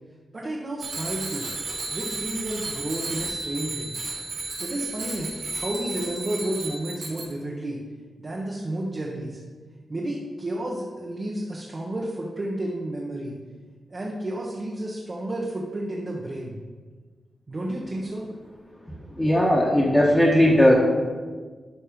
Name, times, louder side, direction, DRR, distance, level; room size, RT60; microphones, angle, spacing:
voice 1, 0.3-1.5 1.9-3.9 4.6-7.8 8.2-9.4 9.9-13.4 13.9-16.6 17.5-18.3, right 1 dB, 35° right, -3 dB, 1.2 m, -31 dB
Bicycle bell, 0.8-7.2, right 3 dB, 85° right, 2.3 m, -33 dB
voice 2, 19.2-20.8, left 1 dB, 10° left, -6 dB, 1.5 m, -17 dB
11.5 x 4.3 x 5.2 m, 1.5 s
wide cardioid pair, 105°, 0 cm